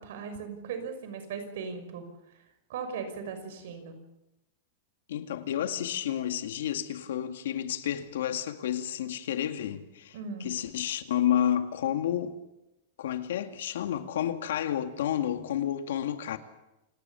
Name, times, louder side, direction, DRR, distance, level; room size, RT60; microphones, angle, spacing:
voice 1, 0.0-2.1 2.3-2.4 2.7-4.0 10.1-10.5, right 5 dB, 70° right, 5.7 m, -38 dB
voice 2, 5.1-10.2 10.4-12.3 13.0-16.4, left 10 dB, 85° left, 2.2 m, -30 dB
28.0 x 19.0 x 7.1 m
supercardioid pair, 165°, 0 cm